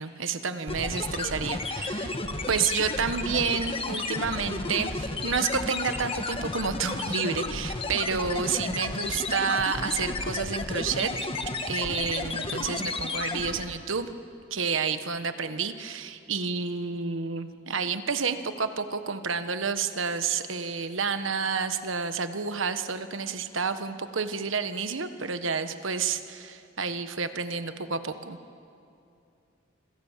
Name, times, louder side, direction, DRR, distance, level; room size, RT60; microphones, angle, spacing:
voice 1, 0.0-2.2 2.5-11.3 11.7-14.1 14.5-28.4, right 5 dB, 75° right, 10 dB, 1.3 m, -30 dB
sound 1, 0.7-13.8, left 3 dB, 30° left, 1.4 m, -32 dB
26.5 x 26.5 x 7.4 m, 2.6 s
head